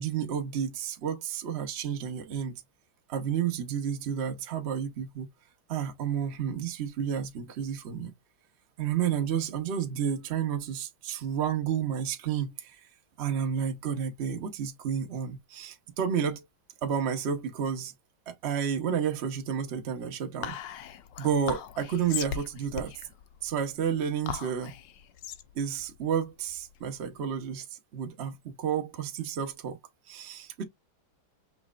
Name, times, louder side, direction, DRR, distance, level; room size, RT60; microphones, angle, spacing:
voice 1, 0.0-2.6 3.1-5.3 5.7-8.1 8.8-12.8 13.2-16.4 16.8-17.9 18.3-20.6 21.2-22.9 23.4-24.7 25.5-27.6 27.9-29.8 30.1-30.6, right 8 dB, 65° right, 0.6 m, -31 dB
Whispering, 20.4-27.1, left 9 dB, 70° left, 1.1 m, -39 dB
5.8 x 3.1 x 2.4 m
omnidirectional pair, 2.3 m